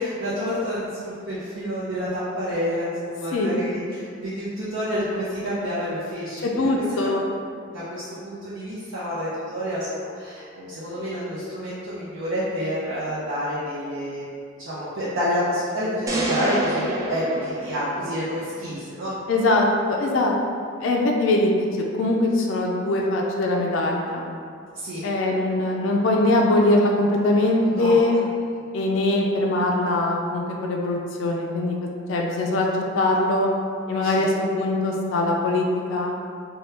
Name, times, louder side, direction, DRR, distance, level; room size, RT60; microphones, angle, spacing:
voice 1, 0.0-7.0 7.7-14.3 14.6-19.2 24.7-25.1 27.6-28.0 34.0-34.3, equal, 70° right, -11 dB, 0.6 m, -28 dB
voice 2, 6.4-7.2 19.3-20.3 20.8-21.5 22.0-24.2 25.0-28.2 28.7-32.7 33.0-33.5 33.9-36.1, left 2 dB, 70° left, -1 dB, 0.3 m, -22 dB
sound 1, 16.1-18.4, right 1 dB, 15° right, 0.3 m, -28 dB
3.2 x 2.2 x 2.9 m, 2.3 s
head